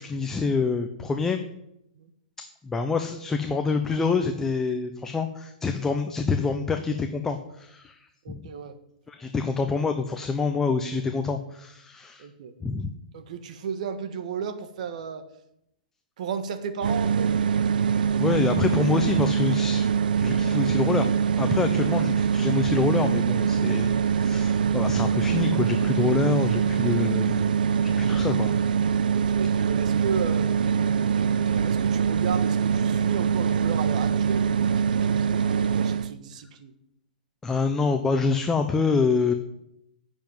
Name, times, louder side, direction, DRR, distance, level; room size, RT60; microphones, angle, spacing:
voice 1, 0.0-1.4 2.6-8.4 9.1-12.3 12.6-12.9 18.2-19.9 20.2-21.1 21.4-27.5 28.0-28.5 37.4-39.3, left 4 dB, 10° left, 6 dB, 0.7 m, -26 dB
voice 2, 8.2-8.7 12.2-12.5 13.1-15.2 16.2-17.3 29.1-34.6 34.9-36.7, right 6 dB, 55° right, 10 dB, 1.6 m, -34 dB
sound 1, 16.8-36.1, right 7 dB, 80° right, 0.6 m, -23 dB
10.5 x 7.2 x 9.4 m, 0.82 s
hypercardioid pair, 155°, 5 cm